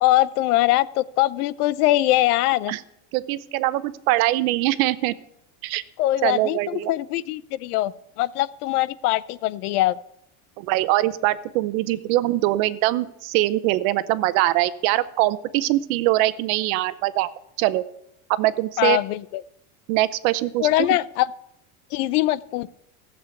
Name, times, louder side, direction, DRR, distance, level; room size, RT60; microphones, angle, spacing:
voice 1, 0.0-2.7 6.0-7.9 8.2-10.0 18.8-19.4 20.6-21.3 21.9-22.7, left 16 dB, 90° left, 18 dB, 0.8 m, -22 dB
voice 2, 3.1-5.1 5.6-5.8 6.2-6.9 10.6-17.3 17.6-17.8 18.3-19.0 19.9-20.7, right 16 dB, 70° right, 15 dB, 0.9 m, -22 dB
15.0 x 7.6 x 8.3 m, 0.79 s
supercardioid pair, 150°, 44 cm